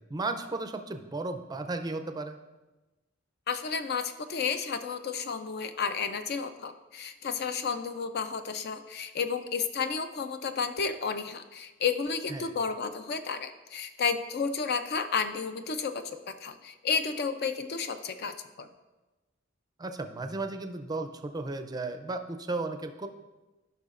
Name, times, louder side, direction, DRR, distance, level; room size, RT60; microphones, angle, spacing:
voice 1, 0.1-2.4 12.3-12.5 19.8-23.1, right 3 dB, 20° right, 8 dB, 0.4 m, -34 dB
voice 2, 3.5-18.7, left 5 dB, 55° left, 9 dB, 0.5 m, -32 dB
14.5 x 5.7 x 2.5 m, 1.1 s
head